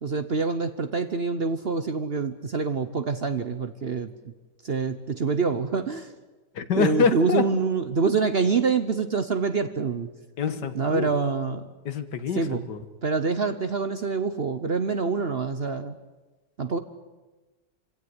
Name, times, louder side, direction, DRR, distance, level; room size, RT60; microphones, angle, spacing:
voice 1, 0.0-4.1 4.6-6.1 6.8-10.1 10.7-11.7 12.3-12.6 13.0-16.0 16.6-16.8, right 4 dB, 45° right, 10 dB, 0.9 m, -26 dB
voice 2, 6.6-7.5 10.4-11.1 11.9-12.8, left 6 dB, 75° left, 10 dB, 2.0 m, -26 dB
26.5 x 17.0 x 9.7 m, 1.2 s
omnidirectional pair, 1.9 m